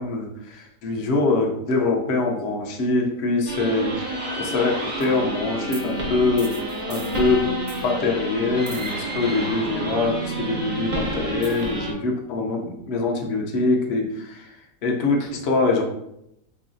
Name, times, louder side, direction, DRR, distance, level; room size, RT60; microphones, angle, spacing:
voice 1, 0.0-6.5 6.9-15.8, left 3 dB, 55° left, 1 dB, 0.8 m, -24 dB
sound 1, 3.5-11.9, right 1 dB, 45° right, 0.6 m, -29 dB
4.8 x 2.7 x 2.6 m, 0.80 s
omnidirectional pair, 1.7 m